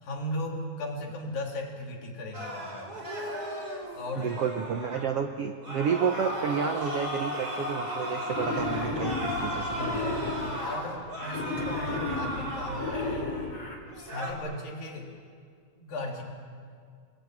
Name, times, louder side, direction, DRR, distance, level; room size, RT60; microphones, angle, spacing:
voice 1, 0.0-2.9 3.9-4.4 9.6-13.4 14.0-15.1 15.8-16.2, left 1 dB, 80° left, 0 dB, 5.3 m, -37 dB
sound 1, 2.3-5.1 5.6-13.4 13.9-14.3, equal, 25° right, 4.8 m, -35 dB
voice 2, 4.1-10.0, right 6 dB, 65° right, 5 dB, 1.5 m, -30 dB
Wild animals, 8.3-10.8 11.3-13.8, left 3 dB, 45° left, 4.3 m, -33 dB
29.0 x 20.0 x 9.1 m, 2.2 s
omnidirectional pair, 4.0 m